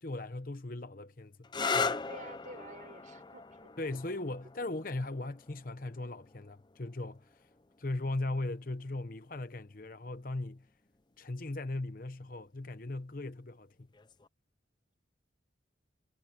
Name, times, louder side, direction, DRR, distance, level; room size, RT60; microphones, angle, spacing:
voice 1, 0.0-1.4 1.7-1.9 3.8-7.5 7.8-10.7 11.2-13.9, left 2 dB, 45° left, 0.9 m, -38 dB
sound 1, 1.4-8.9 9.9-10.4 13.9-14.3, left 4 dB, 25° left, 0.6 m, -39 dB
voice 2, 1.8-3.7, right 2 dB, 40° right, 5.8 m, -49 dB
head